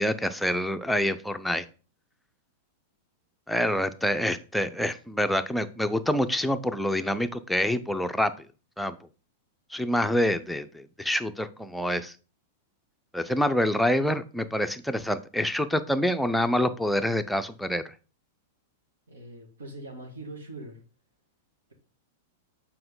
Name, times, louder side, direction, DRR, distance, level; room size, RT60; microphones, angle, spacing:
voice 1, 0.0-1.6 3.5-8.3 8.8-9.0 9.7-12.1 13.1-17.8, left 1 dB, ahead, 8 dB, 0.5 m, -26 dB
voice 2, 19.1-20.8, right 2 dB, 75° right, 2 dB, 2.0 m, -42 dB
7.7 x 4.6 x 3.8 m, 0.35 s
figure-of-eight pair, 100°, 0 cm